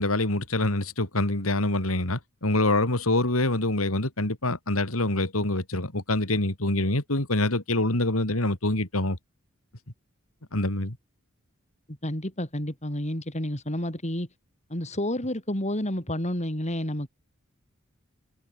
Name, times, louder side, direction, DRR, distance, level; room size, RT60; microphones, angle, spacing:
voice 1, 0.0-9.2 10.5-11.0, left 2 dB, 90° left, 4.0 m, -25 dB
voice 2, 11.9-14.3 14.7-17.1, left 1 dB, 35° left, 6.2 m, -30 dB
head